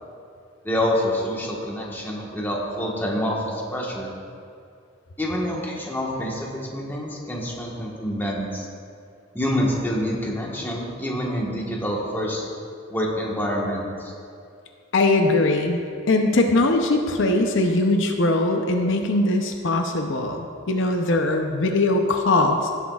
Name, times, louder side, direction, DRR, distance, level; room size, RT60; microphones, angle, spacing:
voice 1, 0.6-4.1 5.2-8.6 9.3-12.5 12.9-14.1, equal, 10° left, -3 dB, 1.3 m, -27 dB
voice 2, 14.9-15.8 16.1-22.7, left 2 dB, 65° left, 4 dB, 0.7 m, -21 dB
16.5 x 8.2 x 2.4 m, 2.4 s
head